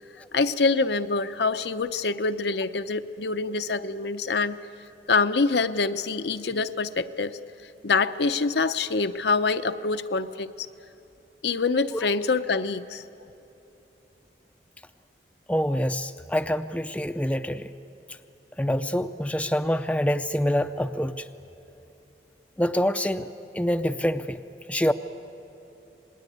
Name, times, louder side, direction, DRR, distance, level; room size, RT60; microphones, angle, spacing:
voice 1, 0.3-4.6 5.1-7.4 7.8-10.7 11.4-13.0, left 4 dB, 75° left, 10 dB, 0.7 m, -25 dB
voice 2, 15.5-17.7 18.6-21.3 22.6-24.4 24.7-24.9, equal, 10° left, 9 dB, 0.5 m, -26 dB
27.5 x 20.0 x 9.3 m, 3.0 s
head